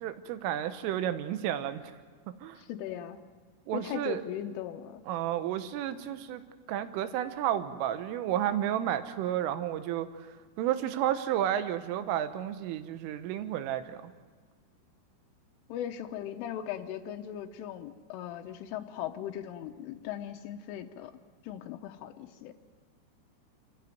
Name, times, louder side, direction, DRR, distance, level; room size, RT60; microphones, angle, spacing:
voice 1, 0.0-1.8 2.4-2.6 3.7-4.2 5.1-6.4 6.7-10.1 10.6-14.1, right 11 dB, 90° right, 10 dB, 3.6 m, -31 dB
voice 2, 2.6-3.2 3.7-5.0 15.7-21.1 21.4-22.5, left 10 dB, 85° left, 5 dB, 3.4 m, -38 dB
26.5 x 14.5 x 9.3 m, 1.5 s
omnidirectional pair, 5.6 m